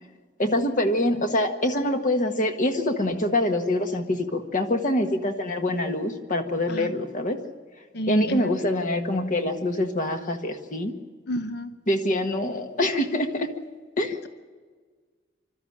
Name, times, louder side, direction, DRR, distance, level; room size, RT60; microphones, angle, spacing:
voice 1, 0.4-7.4 8.1-10.9 11.9-13.5 14.0-14.2, left 1 dB, 45° left, 5 dB, 1.6 m, -25 dB
voice 2, 7.9-8.5 11.3-11.7, equal, 60° left, 9 dB, 0.9 m, -30 dB
25.5 x 13.0 x 8.8 m, 1.5 s
head